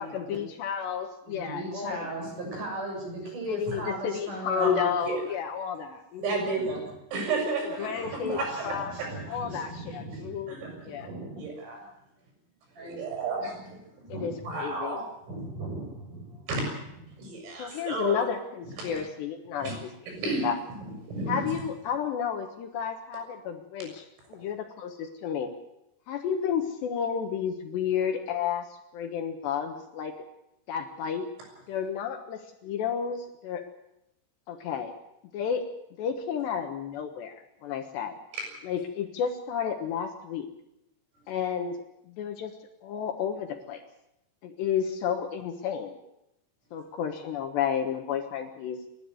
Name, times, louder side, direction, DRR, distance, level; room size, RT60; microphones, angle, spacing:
voice 1, 0.0-2.1 3.5-6.5 7.8-9.0 9.3-10.6 10.8-11.1 14.1-14.3 14.6-15.0 17.6-19.9 20.4-20.6 21.3-22.5 22.7-24.0 24.3-25.5 26.1-28.7 28.9-30.1 30.7-31.3 31.7-33.7 34.5-34.9 35.3-35.6 36.0-38.2 38.6-40.5 41.3-41.8 42.2-42.5 42.8-43.8 44.4-46.0 46.7-48.8, left 8 dB, 70° left, 5 dB, 3.1 m, -31 dB
voice 2, 1.3-4.9 6.6-6.9 7.8-11.5 12.8-13.2 14.1-14.5 15.3-16.5 17.1-17.2, right 2 dB, 40° right, 0 dB, 8.9 m, -38 dB
voice 3, 6.2-6.8 7.1-7.9 8.3-8.4 9.0-9.1 10.5-10.7 11.4-11.8 12.8-13.8 14.5-15.0 16.5-16.6 17.2-18.2 18.8-19.0 19.6-19.8 20.1-20.5 21.1-21.6 38.3-38.5, right 3 dB, 80° right, 1 dB, 9.5 m, -32 dB
28.5 x 12.5 x 8.0 m, 0.85 s
omnidirectional pair, 5.8 m